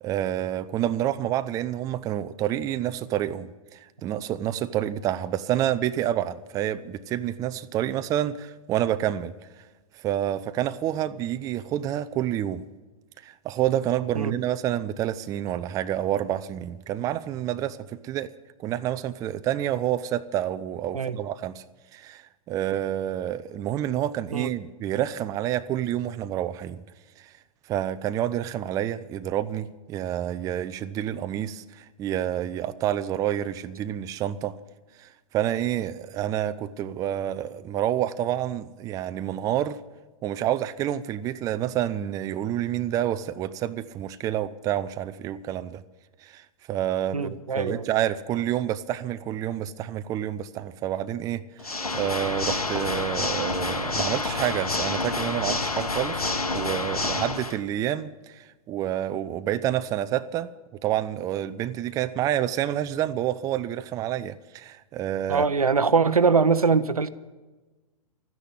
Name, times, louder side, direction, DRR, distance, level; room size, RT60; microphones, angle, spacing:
voice 1, 0.0-9.3 9.9-12.6 13.2-18.3 18.6-21.6 21.9-26.8 27.2-27.3 27.7-34.6 35.0-39.8 40.2-45.8 46.2-51.4 51.9-60.5 60.8-65.5, right 11 dB, 20° right, 0.4 m, -28 dB
voice 2, 47.1-47.8 65.3-67.1, right 5 dB, 85° right, 0.7 m, -22 dB
Water / Mechanisms, 51.6-57.6, left 3 dB, 90° left, 1.0 m, -28 dB
13.0 x 10.0 x 9.2 m
figure-of-eight pair, 110°, 18 cm